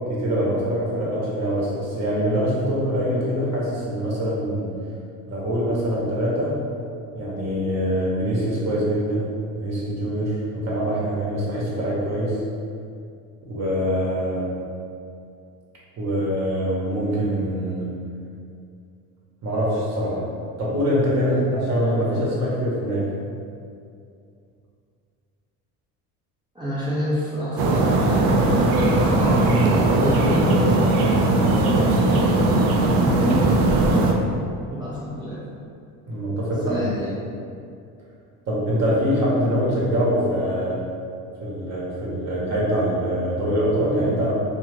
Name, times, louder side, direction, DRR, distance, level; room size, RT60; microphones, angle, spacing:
voice 1, 0.1-4.8 5.3-6.6 7.1-9.3 9.5-12.4 13.4-14.6 16.0-17.9 19.4-20.3 20.6-23.1 36.1-36.8 38.5-40.8 41.4-44.3, equal, 45° right, -6 dB, 1.0 m, -24 dB
voice 2, 26.6-30.4 31.5-33.7 34.7-35.4 36.6-37.1, equal, 15° right, -9 dB, 0.5 m, -28 dB
sound 1, 27.6-34.1, right 2 dB, 80° right, 0.5 m, -19 dB
2.4 x 2.3 x 3.3 m, 2.4 s
supercardioid pair, 100°, 36 cm